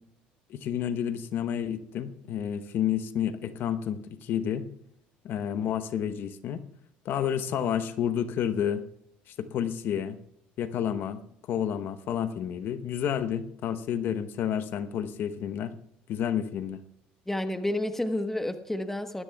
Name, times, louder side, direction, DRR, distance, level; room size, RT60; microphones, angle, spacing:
voice 1, 0.5-4.7 5.2-6.6 7.0-8.8 9.3-10.2 10.6-11.2 11.5-15.7 16.1-16.8, left 9 dB, 60° left, 11 dB, 0.9 m, -30 dB
voice 2, 17.3-19.2, left 1 dB, 5° left, 8 dB, 1.2 m, -30 dB
20.0 x 13.5 x 2.4 m, 0.70 s
supercardioid pair, 90°, 4 cm